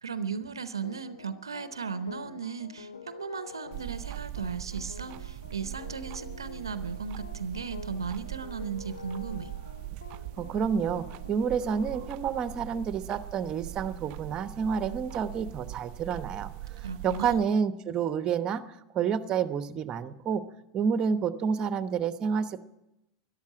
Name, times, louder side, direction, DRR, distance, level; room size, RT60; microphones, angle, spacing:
voice 1, 0.0-9.5 16.8-17.4, right 6 dB, 85° right, 13 dB, 0.7 m, -36 dB
sound 1, 0.8-12.1, left 6 dB, 85° left, 0.9 m, -47 dB
sound 2, 3.7-17.5, right 15 dB, 50° right, 0.5 m, -41 dB
voice 2, 10.4-16.5 17.0-18.6 18.9-20.4 20.7-22.6, right 6 dB, 35° right, 12 dB, 1.0 m, -29 dB
13.5 x 12.0 x 8.8 m, 0.92 s
hypercardioid pair, 90°, 2 cm